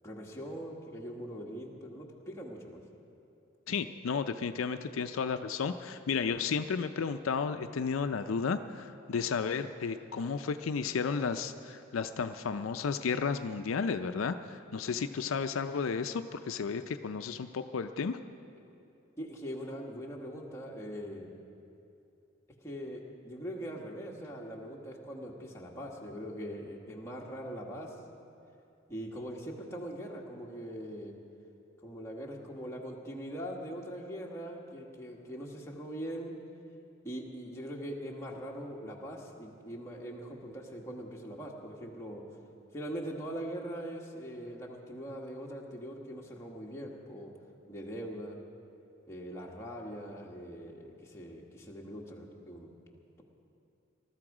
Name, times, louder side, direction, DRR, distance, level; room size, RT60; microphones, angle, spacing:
voice 1, 0.0-2.8 10.2-10.3 19.2-21.3 22.6-27.9 28.9-31.1 31.8-36.3 37.0-42.2 42.7-47.3 47.7-48.4 49.1-52.7, equal, 15° left, -2 dB, 1.6 m, -42 dB
voice 2, 3.7-18.2, left 5 dB, 80° left, 9 dB, 0.5 m, -33 dB
19.5 x 13.0 x 4.9 m, 2.7 s
head